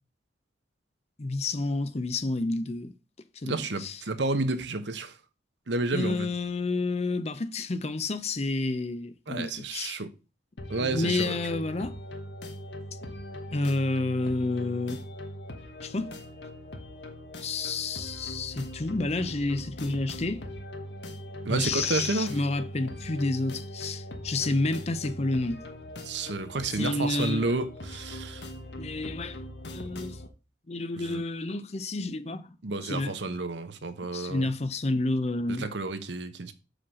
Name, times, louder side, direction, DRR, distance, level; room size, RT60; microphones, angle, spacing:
voice 1, 1.2-2.9 3.4-4.0 5.9-10.0 10.7-12.0 13.5-15.0 15.8-16.1 17.4-20.4 21.5-25.6 26.7-27.5 28.8-29.4 29.7-30.2 30.7-32.6 32.8-33.2 34.1-35.7, left 2 dB, 35° left, 0.6 m, -30 dB
voice 2, 3.4-5.1 5.7-6.3 9.3-10.1 10.7-11.4 21.4-22.4 26.0-28.5 31.0-31.2 32.6-34.5 35.6-36.5, right 3 dB, 75° right, 0.9 m, -30 dB
sound 1, 10.6-30.3, left 1 dB, 70° left, 1.3 m, -41 dB
5.7 x 5.0 x 6.2 m
head